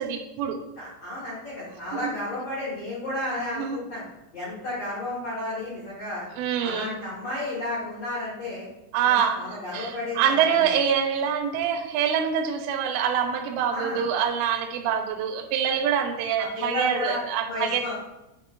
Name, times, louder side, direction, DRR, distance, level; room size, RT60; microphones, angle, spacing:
voice 1, 0.0-0.6 2.0-2.1 3.5-3.8 6.4-7.0 8.9-9.4 9.7-17.9, right 8 dB, 85° right, 4 dB, 2.5 m, -25 dB
voice 2, 0.7-4.0 4.3-6.3 6.6-8.7 9.1-10.8 13.7-14.0 16.4-17.2 17.4-17.9, left 1 dB, 90° left, -8 dB, 1.4 m, -32 dB
8.3 x 4.7 x 2.4 m, 0.91 s
omnidirectional pair, 5.8 m